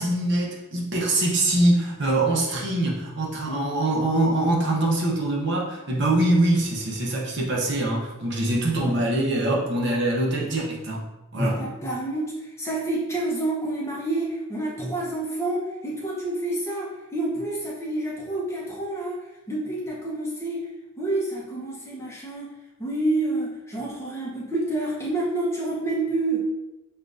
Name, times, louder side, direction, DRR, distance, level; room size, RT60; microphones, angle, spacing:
voice 1, 0.0-11.0 11.3-11.6, right 1 dB, 50° right, -2 dB, 0.8 m, -23 dB
voice 2, 11.4-20.7 21.0-22.5 22.8-26.5, right 2 dB, 10° left, -5 dB, 0.7 m, -28 dB
6.5 x 2.4 x 2.5 m, 1.0 s
head